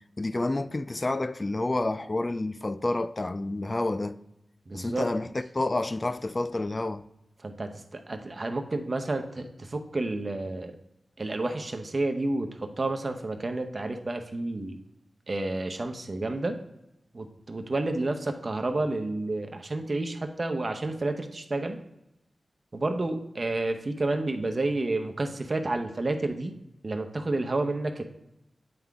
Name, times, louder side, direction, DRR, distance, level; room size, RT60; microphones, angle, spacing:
voice 1, 0.2-4.2 4.7-7.1, left 2 dB, 35° left, 0.4 m, -29 dB
voice 2, 4.7-5.1 7.4-10.8 11.2-14.8 15.3-16.6 17.1-21.8 22.7-26.5 26.8-28.0, right 2 dB, 45° right, 0.8 m, -30 dB
8.8 x 3.7 x 3.5 m
wide cardioid pair, 60°, 0 cm